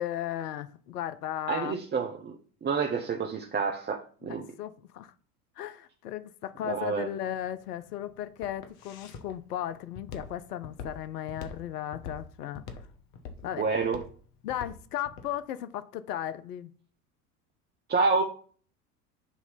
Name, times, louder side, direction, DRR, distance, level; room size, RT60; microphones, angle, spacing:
voice 1, 0.0-1.7 4.2-5.1 5.6-12.7 13.4-13.7 14.4-16.7, left 11 dB, 80° left, 0.7 m, -36 dB
voice 2, 1.5-2.3 2.6-4.5 6.7-7.1 13.6-14.0 17.9-18.2, right 4 dB, 20° right, 0.9 m, -28 dB
Walk footsteps, 7.2-15.3, left 5 dB, 55° left, 1.4 m, -44 dB
7.0 x 3.0 x 5.7 m
hypercardioid pair, 75°, 46 cm